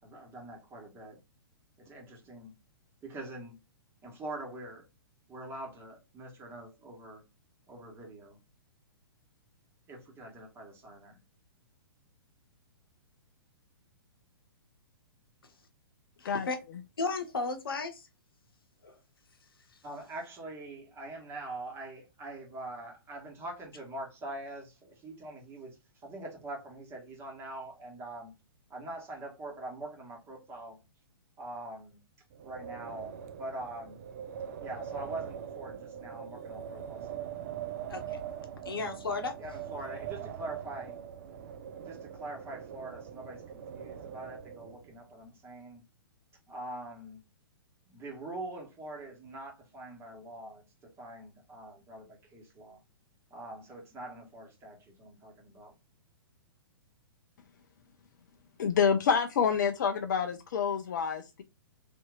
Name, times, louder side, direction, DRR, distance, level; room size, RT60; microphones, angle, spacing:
voice 1, 0.0-1.2 1.8-2.5 3.0-3.6 4.0-4.9 5.3-7.2 7.7-8.4 9.9-11.2 19.8-28.3 28.7-30.8 31.4-32.0 32.4-34.0 34.6-37.3 39.4-41.0 41.8-45.8 46.5-47.2 47.9-52.8 53.3-55.7, right 2 dB, 20° right, 1.2 m, -44 dB
voice 2, 16.2-16.6 17.0-18.1 18.8-19.0 37.9-38.2 38.6-39.3, left 3 dB, 65° left, 0.8 m, -34 dB
Wind, 32.3-44.9, right 9 dB, 40° right, 0.4 m, -42 dB
voice 3, 58.6-61.4, left 6 dB, 50° left, 0.4 m, -27 dB
3.4 x 2.7 x 2.3 m
figure-of-eight pair, 115°, 13 cm